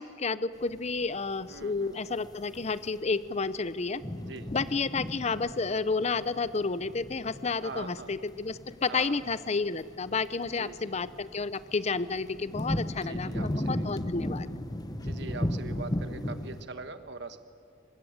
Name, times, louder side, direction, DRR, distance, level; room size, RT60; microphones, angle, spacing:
voice 1, 0.0-4.0 4.5-14.5, left 4 dB, 35° left, 16 dB, 0.6 m, -31 dB
sound 1, 0.7-16.6, left 1 dB, 20° left, 1.1 m, -36 dB
voice 2, 1.5-2.1 4.2-4.8 7.6-8.3 8.9-9.3 10.5-11.0 13.0-13.9 15.0-17.4, right 3 dB, 65° right, 10 dB, 1.3 m, -43 dB
24.0 x 21.0 x 9.5 m, 2.4 s
head